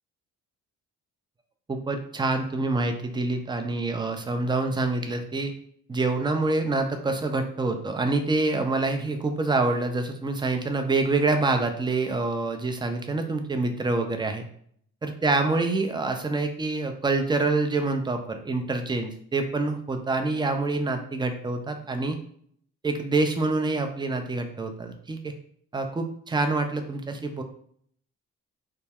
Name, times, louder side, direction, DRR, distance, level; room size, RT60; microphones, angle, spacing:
voice 1, 1.7-5.5 5.9-14.5 15.0-22.2 22.8-25.3 25.7-27.4, right 3 dB, 10° right, 5 dB, 0.4 m, -26 dB
2.2 x 2.1 x 3.4 m, 0.63 s
hypercardioid pair, 40°, 41 cm